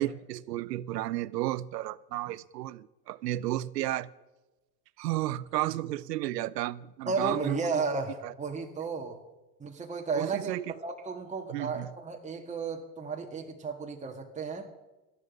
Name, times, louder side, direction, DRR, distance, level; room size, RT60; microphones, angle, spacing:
voice 1, 0.0-4.1 5.0-7.8 8.2-8.3 10.1-10.7 11.5-11.9, right 15 dB, 75° right, 0.9 m, -33 dB
voice 2, 7.1-9.2 9.6-14.7, right 4 dB, 15° right, 1.9 m, -33 dB
18.0 x 13.5 x 5.4 m
hypercardioid pair, 95°, 49 cm